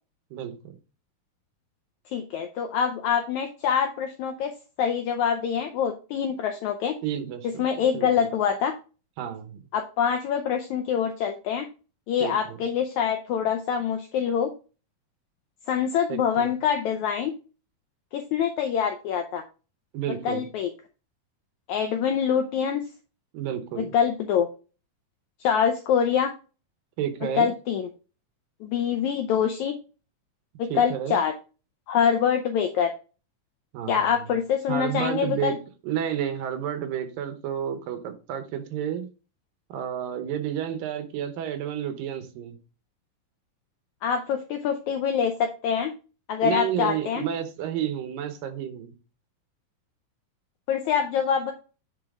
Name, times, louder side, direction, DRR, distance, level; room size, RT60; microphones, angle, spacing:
voice 1, 0.3-0.8 7.0-7.6 7.9-8.3 9.2-9.6 12.2-12.6 16.1-16.5 19.9-20.5 23.3-23.9 27.0-27.5 30.7-31.2 33.7-34.3 34.7-35.6 35.8-39.1 39.7-42.6 46.4-48.9, right 9 dB, 80° right, 8 dB, 2.7 m, -31 dB
voice 2, 2.1-4.5 4.8-6.9 7.4-8.7 9.7-11.6 12.1-14.5 15.7-17.3 18.1-19.4 20.2-20.7 21.7-22.8 23.8-24.5 25.4-26.3 27.3-27.9 28.6-29.7 30.6-31.3 31.9-32.9 33.9-35.6 44.0-45.9 46.3-47.2 50.7-51.5, left 8 dB, 80° left, 5 dB, 1.7 m, -25 dB
8.9 x 4.4 x 3.6 m, 0.34 s
omnidirectional pair, 4.1 m